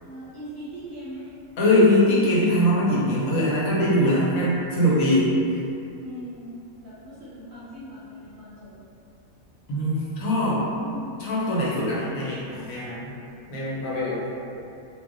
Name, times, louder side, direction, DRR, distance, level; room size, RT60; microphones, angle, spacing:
voice 1, 0.0-1.3 6.0-6.5 6.8-8.7 10.6-11.2, equal, 50° right, -10 dB, 0.6 m, -40 dB
voice 2, 1.6-5.6 9.7-10.6 11.2-13.1 13.5-14.2, left 1 dB, 85° left, -7 dB, 1.2 m, -22 dB
2.4 x 2.0 x 3.8 m, 2.6 s
omnidirectional pair, 1.4 m